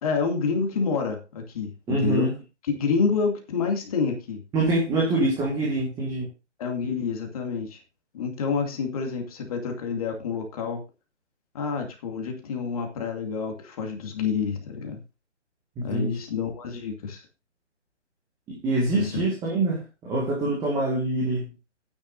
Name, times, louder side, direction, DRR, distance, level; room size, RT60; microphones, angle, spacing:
voice 1, 0.0-2.3 2.8-4.4 6.6-7.8 8.1-10.8 11.5-15.0 15.8-17.2 18.9-19.2, left 5 dB, 30° left, 3 dB, 2.4 m, -28 dB
voice 2, 1.9-2.3 4.5-6.3 15.8-16.2 18.5-21.5, right 2 dB, 10° right, -2 dB, 1.8 m, -25 dB
12.0 x 9.9 x 2.6 m, 0.29 s
figure-of-eight pair, 145°, 36 cm